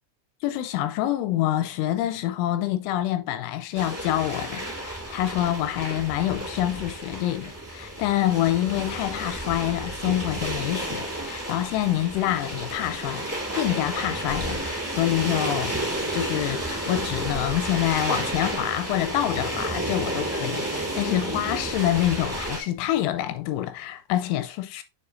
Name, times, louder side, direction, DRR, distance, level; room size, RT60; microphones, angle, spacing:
voice 1, 0.4-15.8 16.1-24.8, left 13 dB, 80° left, 2.9 m, -26 dB
sound 1, 3.7-22.6, right 1 dB, 10° right, 0.7 m, -31 dB
7.1 x 6.8 x 2.4 m
omnidirectional pair, 5.8 m